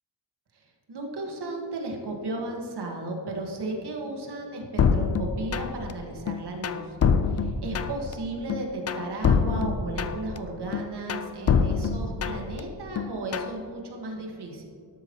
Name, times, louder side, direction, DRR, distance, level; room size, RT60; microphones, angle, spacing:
voice 1, 0.5-7.0 7.3-14.7, right 2 dB, 60° right, 0 dB, 1.8 m, -35 dB
sound 1, 4.8-5.9 6.3-8.1 8.5-10.4 10.7-12.6 13.0-13.6, left 6 dB, 35° left, 0.4 m, -25 dB
13.0 x 12.0 x 3.1 m, 2.5 s
wide cardioid pair, 160°, 44 cm